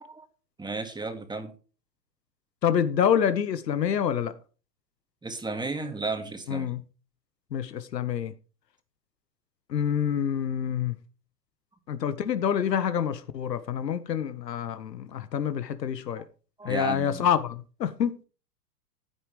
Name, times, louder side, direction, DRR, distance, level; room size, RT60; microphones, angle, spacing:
voice 1, 0.6-1.5 5.2-6.7 16.6-17.3, right 3 dB, 10° right, 2.2 m, -33 dB
voice 2, 2.6-4.3 6.5-6.8 7.5-8.3 9.7-11.0 11.9-16.2 16.6-18.2, left 8 dB, 75° left, 1.3 m, -27 dB
15.0 x 9.3 x 3.3 m
hypercardioid pair, 105°, 49 cm